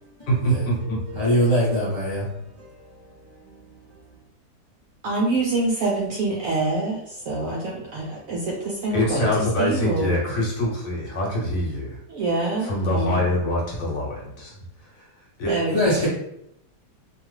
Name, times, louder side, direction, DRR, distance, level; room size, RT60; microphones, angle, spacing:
voice 1, 0.3-1.2 8.9-12.0 12.6-14.5 15.0-15.1 15.4-15.6, equal, 60° left, 1.1 m, -24 dB
voice 2, 1.2-2.2 15.7-16.1, equal, 35° left, 0.4 m, -21 dB
voice 3, 5.0-9.3 9.6-10.2 12.1-13.4 15.5-16.0, right 2 dB, 70° right, 0.8 m, -26 dB
2.8 x 2.3 x 3.1 m
omnidirectional pair, 1.8 m